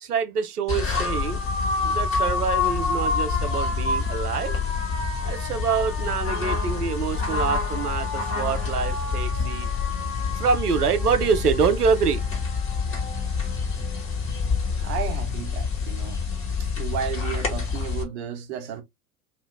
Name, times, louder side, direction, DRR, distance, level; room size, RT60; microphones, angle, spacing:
voice 1, 0.0-1.4 1.8-4.6 5.2-9.7 10.4-12.2, right 6 dB, 90° right, 0.6 m, -25 dB
sound 1, 0.7-18.0, left 4 dB, 30° left, 1.3 m, -27 dB
voice 2, 14.8-16.2 16.6-18.8, right 8 dB, 50° right, 1.0 m, -33 dB
2.8 x 2.5 x 3.4 m
figure-of-eight pair, 80°, 45 cm